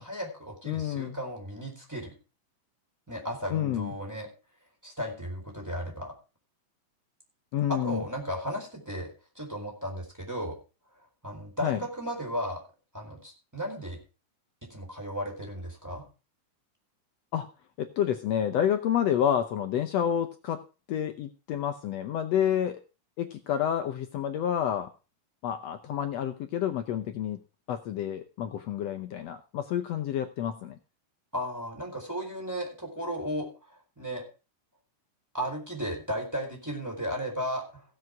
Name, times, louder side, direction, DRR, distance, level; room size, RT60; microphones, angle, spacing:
voice 1, 0.0-2.1 3.1-4.3 4.8-6.1 7.7-9.1 9.3-10.5 11.2-12.6 12.9-14.0 14.6-16.0 31.3-34.2 35.3-37.8, equal, 5° right, 1 dB, 3.9 m, -35 dB
voice 2, 0.7-1.2 3.5-3.9 7.5-8.0 11.6-11.8 17.3-17.5 17.8-20.6 20.9-22.8 23.2-24.9 25.4-27.4 27.7-30.8, left 9 dB, 75° left, 8 dB, 1.5 m, -29 dB
16.0 x 7.8 x 4.7 m, 0.32 s
omnidirectional pair, 3.8 m